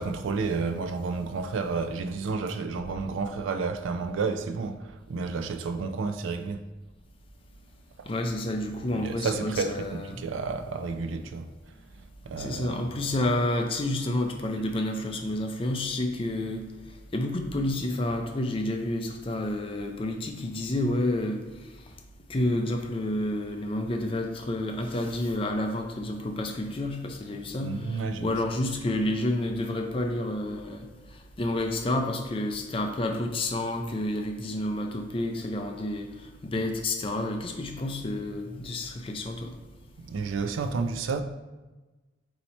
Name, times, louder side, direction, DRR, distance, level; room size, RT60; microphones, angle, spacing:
voice 1, 0.0-6.6 8.9-11.5 12.3-13.2 27.6-28.4 40.0-41.2, right 4 dB, 80° right, 0.4 m, -31 dB
voice 2, 8.1-10.2 12.4-16.7 17.1-21.4 22.3-39.5, left 1 dB, 30° left, 0.4 m, -30 dB
4.2 x 2.8 x 4.2 m
head